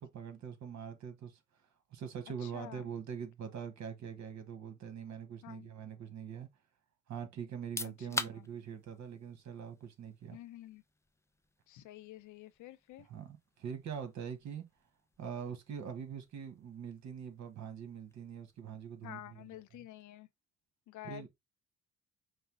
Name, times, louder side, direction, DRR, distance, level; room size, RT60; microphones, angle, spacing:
voice 1, 0.0-1.4 1.9-6.5 7.1-10.4 13.1-14.6 15.2-19.4 21.0-21.3, right 7 dB, 65° right, 1.3 m, -43 dB
voice 2, 2.4-2.9 5.4-5.7 7.8-8.5 10.3-10.8 11.7-13.1 19.0-20.3 20.9-21.3, left 14 dB, 75° left, 0.6 m, -50 dB
sound 1, 7.5-20.2, left 2 dB, 10° left, 0.4 m, -48 dB
5.3 x 2.0 x 3.8 m
cardioid pair, 90°, 30 cm